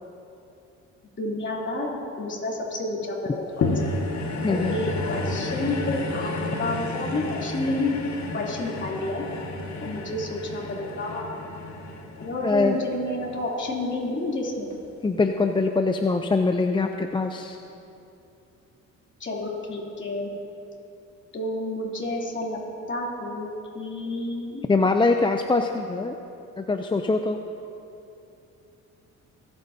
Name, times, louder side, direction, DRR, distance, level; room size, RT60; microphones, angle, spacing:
voice 1, 1.2-3.7 4.5-6.3 6.6-8.0 8.3-9.2 9.8-11.4 12.2-14.7 19.2-20.3 21.3-22.6 22.9-23.5 23.7-24.6, left 2 dB, 40° left, -4 dB, 3.0 m, -30 dB
sound 1, 3.6-14.1 14.7-14.8, left 2 dB, 65° left, 1.7 m, -31 dB
voice 2, 4.4-4.7 12.4-12.8 15.0-17.6 24.7-26.2 26.6-27.4, left 3 dB, 15° left, 5 dB, 0.5 m, -23 dB
25.5 x 9.0 x 2.8 m, 2.8 s
cardioid pair, 90°, 30 cm